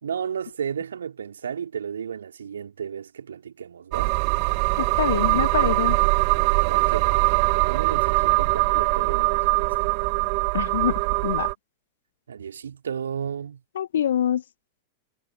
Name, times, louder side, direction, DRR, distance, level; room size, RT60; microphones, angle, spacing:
voice 1, 0.0-4.2 6.6-9.9 12.3-13.6, right 7 dB, 70° right, 4.1 m, -33 dB
sound 1, 3.9-11.5, right 40 dB or more, 45° right, 1.9 m, -22 dB
voice 2, 4.8-6.0 10.5-10.9 11.2-11.5 13.8-14.4, left 10 dB, 65° left, 1.2 m, -25 dB
figure-of-eight pair, 90°, 0 cm